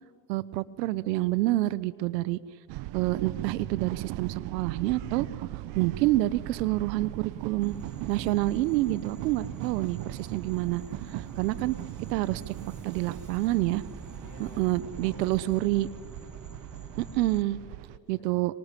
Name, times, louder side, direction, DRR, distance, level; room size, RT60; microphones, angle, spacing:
voice 1, 0.3-2.4 2.9-5.3 5.8-7.8 8.1-10.8 11.4-11.8 12.1-12.5 12.8-13.8 14.4-15.9 17.0-17.6 18.1-18.5, right 17 dB, 80° right, 19 dB, 1.0 m, -27 dB
sound 1, 2.7-18.0, right 16 dB, 60° right, 1.2 m, -39 dB
sound 2, 4.4-14.6, right 6 dB, 40° right, 3.5 m, -57 dB
sound 3, 7.6-17.4, equal, ahead, 0.9 m, -48 dB
voice 2, 9.4-10.1 14.2-15.5 15.9-16.5 17.7-18.6, left 2 dB, 50° left, 2 dB, 7.5 m, -54 dB
25.0 x 24.5 x 8.4 m, 2.4 s
supercardioid pair, 95°, 49 cm